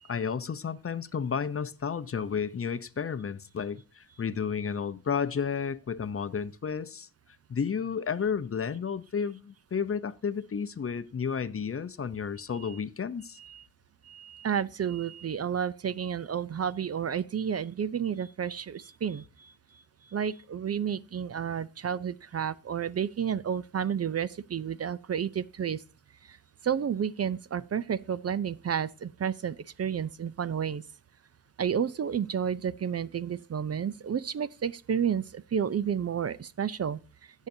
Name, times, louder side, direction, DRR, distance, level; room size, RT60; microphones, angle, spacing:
voice 1, 0.1-7.1 7.5-13.4, left 6 dB, 40° left, 0.7 m, -32 dB
voice 2, 14.0-19.5 20.1-25.8 26.2-26.4 26.6-30.8 31.6-37.5, right 8 dB, 45° right, 0.5 m, -31 dB
17.0 x 7.3 x 2.7 m
wide cardioid pair, 100°, 35 cm